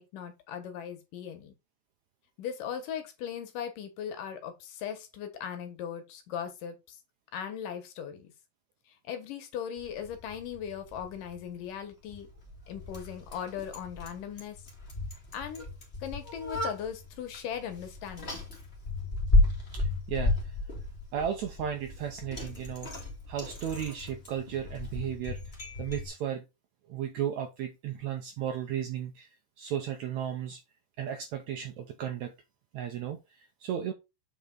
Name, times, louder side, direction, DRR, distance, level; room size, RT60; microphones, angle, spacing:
voice 1, 0.0-1.6 2.4-7.0 7.3-8.3 8.9-12.3 12.7-14.6 15.3-15.7 16.0-18.4, left 8 dB, 75° left, 2.8 m, -38 dB
Bicycle, 9.8-26.1, left 2 dB, 20° left, 2.0 m, -33 dB
voice 2, 19.7-20.5 21.1-22.9 23.3-25.4 25.8-26.4 26.9-29.3 29.6-30.6 31.0-32.3 32.7-33.9, right 9 dB, 75° right, 1.8 m, -34 dB
7.7 x 4.7 x 3.9 m
omnidirectional pair, 4.0 m